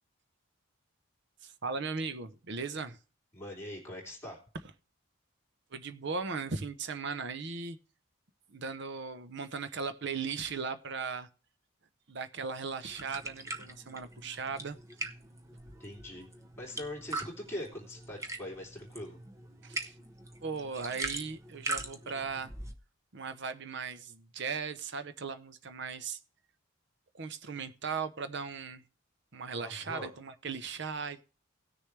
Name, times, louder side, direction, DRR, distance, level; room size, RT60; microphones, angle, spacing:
voice 1, 1.4-3.0 5.7-7.8 8.5-11.3 12.1-14.8 19.6-19.9 20.4-22.5 23.1-26.2 27.1-28.8 29.3-31.2, right 5 dB, 55° right, 0.8 m, -37 dB
voice 2, 3.3-4.4 15.6-16.2 16.6-19.2 29.6-30.1, left 1 dB, 10° left, 3.0 m, -42 dB
sound 1, 12.9-22.8, right 2 dB, 15° right, 0.7 m, -42 dB
17.0 x 6.7 x 3.3 m
head